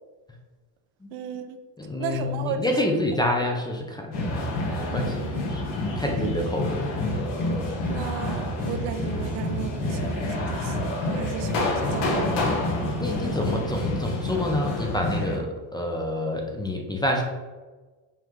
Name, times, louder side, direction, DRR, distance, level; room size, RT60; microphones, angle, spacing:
voice 1, 1.1-1.6 2.0-2.7 6.2-6.3 7.9-12.4, right 8 dB, 75° right, 8 dB, 0.6 m, -35 dB
voice 2, 1.8-5.2 5.5-5.6 6.0-6.8 13.0-17.2, left 1 dB, 10° left, 1 dB, 0.5 m, -28 dB
sound 1, 4.1-15.4, left 1 dB, 60° left, 1.3 m, -28 dB
5.6 x 2.3 x 3.1 m, 1.3 s
supercardioid pair, 90°, 48 cm